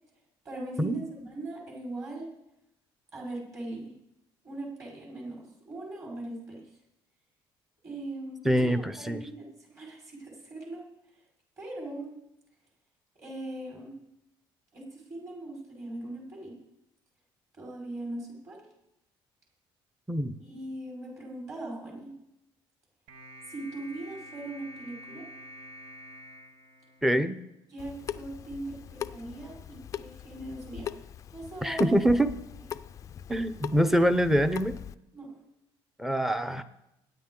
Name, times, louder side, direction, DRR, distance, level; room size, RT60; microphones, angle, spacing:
voice 1, 0.4-2.3 3.1-3.9 4.4-6.6 7.8-10.8 11.6-12.1 13.1-13.9 14.7-16.6 17.6-18.6 20.4-22.1 23.5-25.3 27.7-30.9 31.3-32.0 35.1-35.3, right 2 dB, 30° right, -3 dB, 4.8 m, -40 dB
voice 2, 8.4-9.2 20.1-20.4 27.0-27.4 31.6-32.3 33.3-34.8 36.0-36.6, equal, 5° right, 10 dB, 0.7 m, -24 dB
sound 1, 23.1-27.6, equal, 85° right, 1.3 m, -48 dB
Water tap faucet / Sink (filling or washing) / Drip, 27.8-34.9, left 9 dB, 35° left, 0.4 m, -41 dB
22.0 x 9.4 x 3.8 m, 0.85 s
cardioid pair, 150°, 10 cm